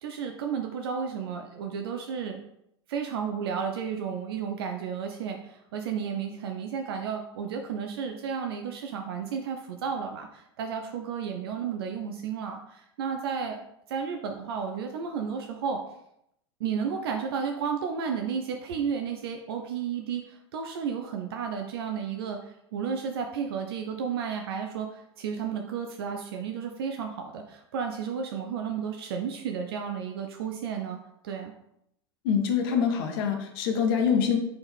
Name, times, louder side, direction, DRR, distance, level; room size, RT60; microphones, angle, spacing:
voice 1, 0.0-2.4 2.9-13.6 13.9-15.8 16.6-31.0 31.2-31.5, right 6 dB, 60° right, 3 dB, 0.5 m, -32 dB
voice 2, 32.2-34.4, left 7 dB, 55° left, 4 dB, 0.8 m, -25 dB
4.3 x 3.3 x 3.4 m, 0.78 s
figure-of-eight pair, 85°, 15 cm